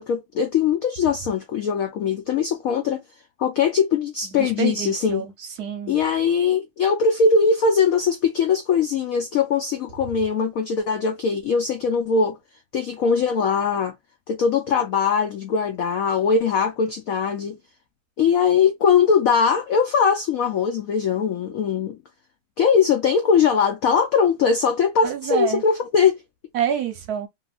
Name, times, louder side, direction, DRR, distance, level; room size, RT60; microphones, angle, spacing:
voice 1, 0.0-3.0 3.4-5.2 5.9-12.4 12.7-13.9 14.3-17.6 18.2-22.0 22.6-26.2, left 6 dB, 75° left, 0.7 m, -21 dB
voice 2, 4.3-6.0 25.0-25.6 26.5-27.3, right 9 dB, 65° right, 1.0 m, -27 dB
2.9 x 2.7 x 2.3 m
omnidirectional pair, 2.0 m